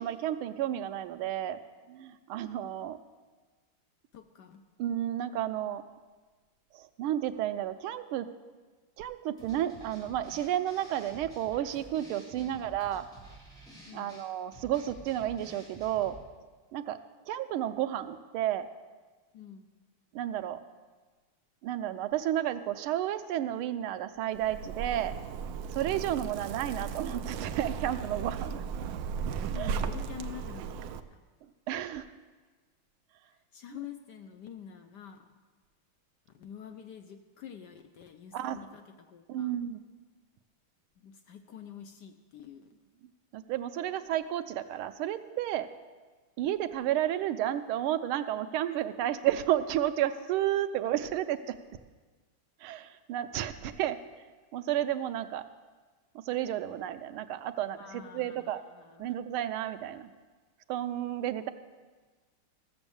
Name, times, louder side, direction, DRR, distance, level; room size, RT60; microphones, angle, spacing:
voice 1, 0.0-1.6 1.9-3.0 4.8-5.8 6.7-8.3 9.0-13.0 13.9-16.2 16.7-17.0 17.3-18.7 20.1-20.6 21.6-25.1 25.7-28.7 29.6-29.8 31.7-32.1 38.3-38.6 39.3-39.8 43.3-45.7 46.4-51.6 52.6-54.0 54.5-55.4 56.2-58.6 59.0-60.1 60.7-61.5, right 12 dB, 90° right, 10 dB, 1.5 m, -32 dB
voice 2, 4.1-4.6 12.3-12.6 13.9-14.2 19.3-19.7 29.5-31.2 33.2-35.2 36.3-39.5 41.0-42.7 57.8-59.2, left 9 dB, 70° left, 6 dB, 1.0 m, -47 dB
sound 1, 9.4-16.2, right 2 dB, ahead, 2.7 m, -51 dB
Zipper (clothing), 24.3-31.0, right 6 dB, 75° right, 1.2 m, -36 dB
14.5 x 7.1 x 6.9 m, 1.4 s
omnidirectional pair, 2.3 m